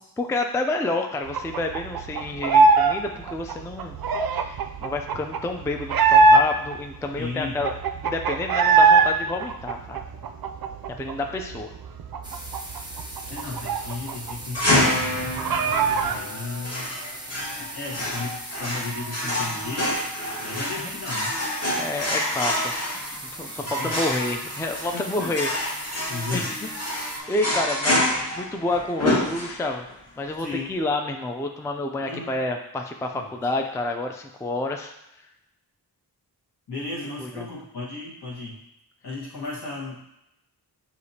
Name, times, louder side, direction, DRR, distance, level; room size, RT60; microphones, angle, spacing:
voice 1, 0.2-4.0 4.3-7.7 8.0-10.0 10.9-11.7 20.8-20.9 21.8-22.7 23.3-26.0 26.3-29.9 30.2-34.9 37.2-37.5, left 2 dB, 10° left, 4 dB, 0.3 m, -29 dB
sound 1, 1.3-3.0 3.2-6.7 7.2-7.3 7.4-9.1 9.4-11.1 11.4-11.5 11.8-14.3 14.6-14.7 15.0-16.2, right 3 dB, 60° right, 0.5 m, -20 dB
voice 2, 7.2-7.6 13.3-16.9 17.5-20.0 20.4-21.3 23.6-24.1 24.9-25.3 26.1-26.5 30.4-30.7 32.0-32.3 33.1-33.4 36.7-38.6 39.0-40.0, left 3 dB, 70° left, -4 dB, 1.4 m, -35 dB
sound 2, 12.2-27.2, right 1 dB, 10° right, 0.8 m, -39 dB
sound 3, 14.5-29.9, left 1 dB, 35° left, 1.1 m, -27 dB
6.0 x 2.9 x 2.7 m, 0.86 s
wide cardioid pair, 60°, 41 cm